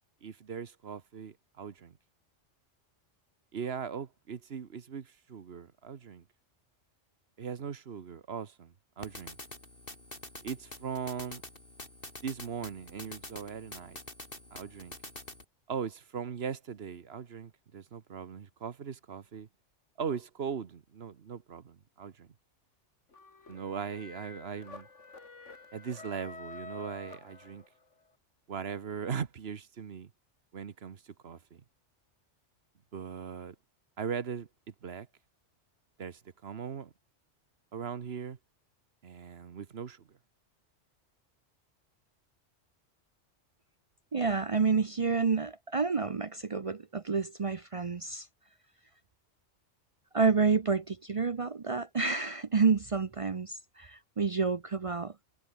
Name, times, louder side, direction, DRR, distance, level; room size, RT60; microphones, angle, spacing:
voice 1, 0.2-2.0 3.5-6.2 7.4-9.4 10.4-11.4 12.2-14.0 14.5-15.0 15.7-19.5 20.0-22.3 23.5-24.9 25.7-27.6 28.5-30.1 30.5-31.6 32.9-33.5 34.0-35.1 36.0-36.9 37.7-38.4 39.0-40.1, right 6 dB, 60° right, 1.3 m, -39 dB
sound 1, 9.0-15.4, left 1 dB, 50° left, 6.2 m, -47 dB
sound 2, 23.1-27.9, left 4 dB, 80° left, 3.0 m, -48 dB
voice 2, 44.1-48.3 50.1-55.1, right 5 dB, 35° right, 0.6 m, -29 dB
omnidirectional pair, 1.2 m